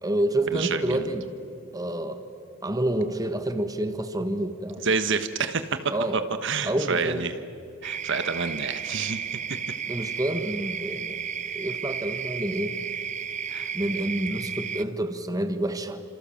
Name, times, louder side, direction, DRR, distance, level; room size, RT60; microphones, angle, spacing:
voice 1, 0.0-1.3 1.7-2.2 2.6-4.9 5.9-6.2 6.7-7.3 9.9-11.2 11.5-12.8 13.7-16.0, right 1 dB, 20° right, 8 dB, 1.4 m, -28 dB
voice 2, 0.5-1.0 4.8-7.3 7.8-9.4 13.5-13.7, right 5 dB, 60° right, 10 dB, 1.3 m, -28 dB
sound 1, 7.8-14.8, right 7 dB, 35° right, 0.6 m, -33 dB
29.5 x 27.0 x 7.3 m, 2.8 s
head